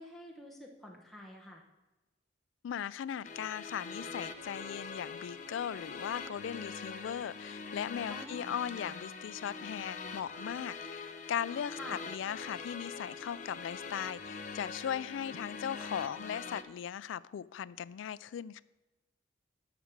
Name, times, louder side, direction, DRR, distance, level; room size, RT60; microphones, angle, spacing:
voice 1, 0.0-1.6 8.1-8.6 11.8-12.0, left 1 dB, ahead, -2 dB, 0.9 m, -48 dB
voice 2, 2.6-18.6, left 9 dB, 85° left, 18 dB, 0.3 m, -38 dB
sound 1, 3.2-16.6, left 4 dB, 40° left, 0.6 m, -43 dB
8.1 x 5.9 x 6.6 m, 1.1 s
head